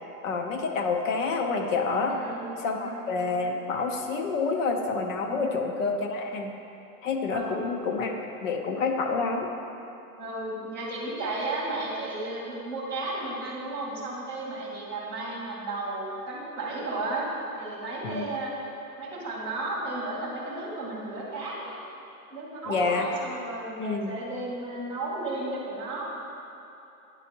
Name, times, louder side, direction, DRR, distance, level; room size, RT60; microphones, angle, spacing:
voice 1, 0.2-2.2 2.6-6.5 7.0-9.5 18.0-18.3 22.7-23.1 23.8-24.2, left 4 dB, 55° left, 3 dB, 0.7 m, -28 dB
voice 2, 2.1-2.5 2.8-3.0 5.3-5.4 7.3-7.6 10.2-17.3 17.5-18.5 19.0-21.8 22.3-26.3, right 2 dB, 5° left, -13 dB, 0.6 m, -34 dB
9.8 x 4.4 x 2.8 m, 2.9 s
supercardioid pair, 175°, 47 cm